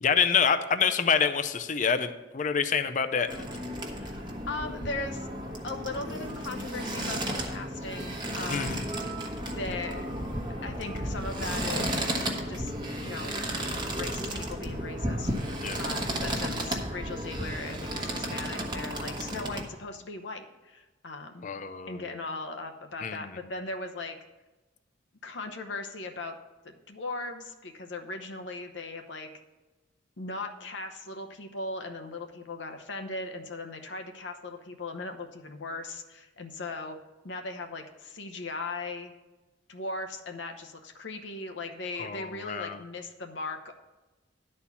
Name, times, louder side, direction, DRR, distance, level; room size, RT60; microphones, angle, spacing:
voice 1, 0.0-3.4 8.5-8.8 15.6-15.8 21.4-22.1 23.0-23.3 42.0-42.8, left 6 dB, 40° left, 9 dB, 0.5 m, -27 dB
sound 1, 3.3-19.6, right 1 dB, 25° right, 1.1 m, -33 dB
voice 2, 3.9-5.3 5.6-8.9 9.4-10.1 10.6-12.2 12.5-12.7 13.0-13.3 13.9-21.5 21.9-24.2 25.2-26.4 26.6-29.3 30.2-37.0 37.2-39.1 39.7-43.7, left 3 dB, 70° left, 5 dB, 0.8 m, -38 dB
11.0 x 4.3 x 7.0 m, 1.1 s
head